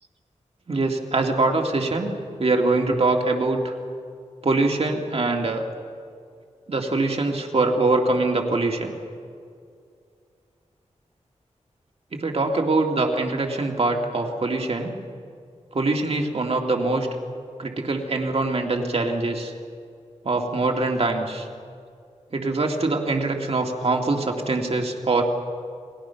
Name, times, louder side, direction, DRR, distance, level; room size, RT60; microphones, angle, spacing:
voice 1, 0.7-2.1 2.4-3.7 4.4-5.6 6.7-9.0 12.2-15.0 15.7-17.1 17.6-19.5 20.2-21.5 22.3-25.2, right 3 dB, 55° right, 2 dB, 2.3 m, -23 dB
29.0 x 19.5 x 5.8 m, 2.3 s
wide cardioid pair, 80°, 12 cm